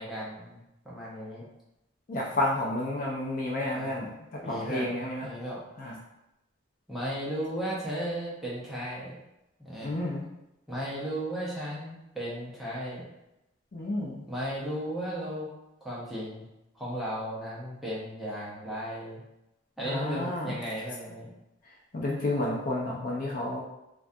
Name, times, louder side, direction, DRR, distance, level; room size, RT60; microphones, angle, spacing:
voice 1, 0.0-1.4 3.7-4.1 4.4-4.9 5.2-5.6 6.9-9.2 9.6-10.0 10.7-13.0 14.3-15.5 15.8-16.4 16.7-19.2 19.8-21.3, equal, ahead, -8 dB, 0.6 m, -35 dB
voice 2, 2.1-5.3 5.8-6.0 9.8-10.3 13.7-14.3 19.8-20.6 21.6-23.6, left 1 dB, 45° left, -3 dB, 0.4 m, -31 dB
2.3 x 2.2 x 2.6 m, 0.91 s
head